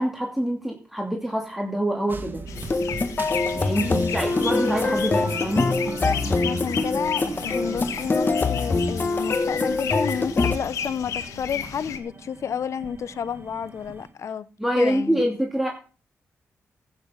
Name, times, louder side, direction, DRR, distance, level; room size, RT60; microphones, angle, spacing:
voice 1, 0.0-2.4 3.5-5.7 14.6-15.7, equal, 5° right, 2.7 m, -25 dB
sound 1, 2.1-14.1, right 4 dB, 40° right, 2.7 m, -38 dB
sound 2, 2.5-12.0, left 8 dB, 90° left, 1.3 m, -34 dB
sound 3, 2.6-10.6, left 3 dB, 40° left, 1.3 m, -24 dB
voice 2, 3.8-4.2 6.4-14.5 14.8-15.2, left 7 dB, 70° left, 0.8 m, -31 dB
15.0 x 6.8 x 5.7 m
cardioid pair, 55°, 5 cm